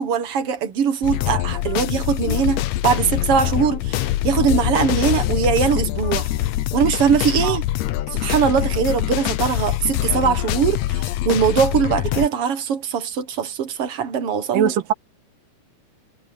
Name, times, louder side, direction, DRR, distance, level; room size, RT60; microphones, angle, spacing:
voice 1, 0.0-6.3 6.7-7.6 8.1-14.7, right 7 dB, 55° right, 2.0 m, -21 dB
sound 1, 1.0-12.3, left 14 dB, 75° left, 1.6 m, -24 dB
voice 2, 14.5-14.9, right 9 dB, 90° right, 2.8 m, -21 dB
omnidirectional pair, 3.8 m